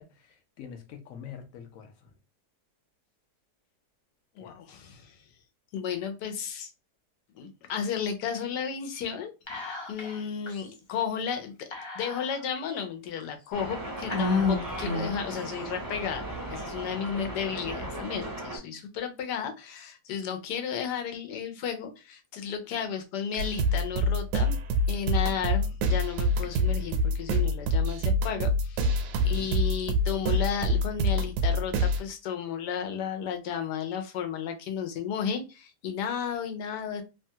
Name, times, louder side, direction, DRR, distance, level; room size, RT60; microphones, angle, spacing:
voice 1, 0.0-2.1 4.4-4.6 29.1-29.5, left 7 dB, 65° left, 0.9 m, -46 dB
voice 2, 4.4-5.2 5.7-6.7 7.3-9.3 9.9-11.7 12.0-16.2 16.5-24.5 24.9-37.0, left 7 dB, 85° left, 1.3 m, -33 dB
Whispering, 9.5-10.2 10.5-10.6 11.7-12.6 13.2-13.3 14.1-15.3, left 4 dB, 30° left, 0.5 m, -29 dB
sound 1, 13.5-18.6, right 1 dB, 25° right, 0.4 m, -37 dB
sound 2, 23.4-32.0, equal, 80° right, 1.1 m, -26 dB
3.0 x 2.3 x 2.7 m
omnidirectional pair, 1.7 m